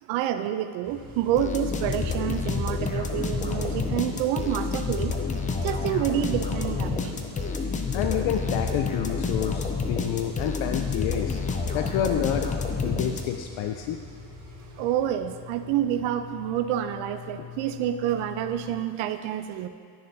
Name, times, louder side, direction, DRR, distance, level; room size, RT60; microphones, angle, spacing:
voice 1, 0.0-5.1 5.6-7.3 14.8-19.7, right 11 dB, 85° right, 9 dB, 0.6 m, -28 dB
sound 1, 0.8-18.7, left 3 dB, 35° right, 1.7 m, -45 dB
sound 2, 1.4-13.6, left 4 dB, 20° left, 0.3 m, -29 dB
voice 2, 7.9-11.4 11.7-12.5 12.8-14.0 17.4-17.5, left 10 dB, 80° left, 5 dB, 0.6 m, -29 dB
11.0 x 6.6 x 2.7 m, 2.1 s
cardioid pair, 140°, 46 cm